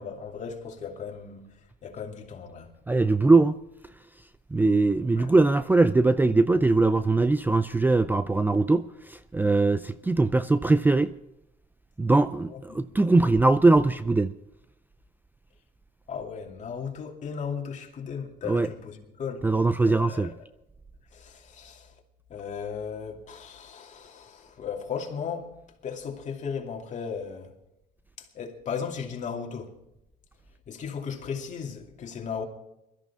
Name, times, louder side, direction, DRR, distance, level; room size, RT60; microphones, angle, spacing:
voice 1, 0.0-1.5 1.8-2.7 5.2-5.3 12.5-12.8 16.1-19.5 19.8-20.3 21.1-21.9 22.3-25.5 25.8-27.5 28.2-29.7 30.7-32.5, left 6 dB, 45° left, 2.6 m, -36 dB
voice 2, 2.9-3.6 4.5-11.1 12.0-14.3 18.5-18.7 19.4-20.3, right 3 dB, 10° right, 0.4 m, -21 dB
22.0 x 13.5 x 3.6 m
cardioid pair, 110°, 17 cm